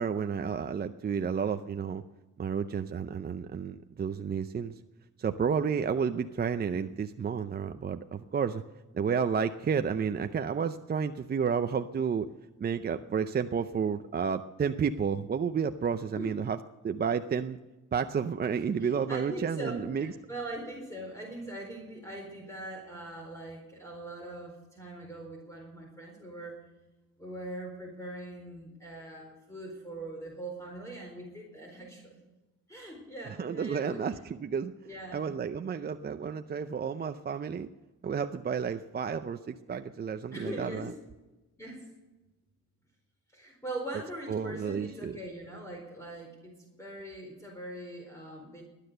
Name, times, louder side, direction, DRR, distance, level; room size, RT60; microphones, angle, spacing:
voice 1, 0.0-2.0 2.4-4.7 5.2-8.6 8.9-12.3 12.6-16.6 16.8-17.6 17.9-20.1 33.4-34.1 34.4-34.7 35.1-37.7 38.0-40.9 44.3-45.2, right 6 dB, 30° right, 9 dB, 0.6 m, -31 dB
voice 2, 18.5-26.6 27.2-32.2 32.7-34.6 34.8-35.3 40.3-40.9 41.6-41.9 43.3-48.6, right 1 dB, 10° left, 0 dB, 4.3 m, -41 dB
19.0 x 10.0 x 6.8 m, 1.1 s
cardioid pair, 90°, 30 cm